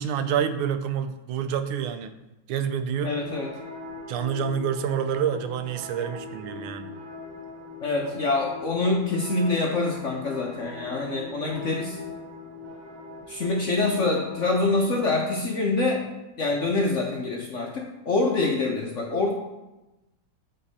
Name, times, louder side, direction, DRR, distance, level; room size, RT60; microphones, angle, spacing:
voice 1, 0.0-2.1 2.5-3.1 4.1-6.9, right 8 dB, 80° right, 9 dB, 1.5 m, -27 dB
voice 2, 3.0-3.5 7.8-12.0 13.3-16.0 16.4-19.3, left 3 dB, 60° left, -1 dB, 0.8 m, -25 dB
sound 1, 3.1-15.1, left 3 dB, 50° right, 1.3 m, -41 dB
7.7 x 5.4 x 4.1 m, 0.99 s
omnidirectional pair, 2.3 m